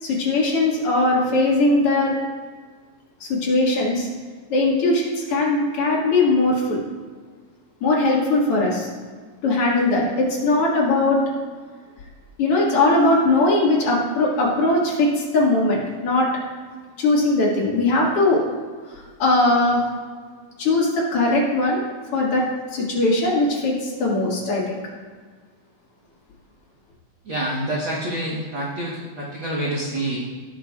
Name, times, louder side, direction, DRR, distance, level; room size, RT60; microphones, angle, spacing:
voice 1, 0.0-2.1 3.2-4.1 4.5-6.8 7.8-8.9 9.4-11.2 12.4-16.3 17.0-18.4 18.9-19.8 20.6-21.8 22.1-22.5 22.7-24.8, left 2 dB, 45° left, -4 dB, 2.3 m, -20 dB
voice 2, 27.2-30.2, right 1 dB, 75° right, -5 dB, 1.1 m, -27 dB
17.0 x 6.1 x 2.4 m, 1.5 s
omnidirectional pair, 4.1 m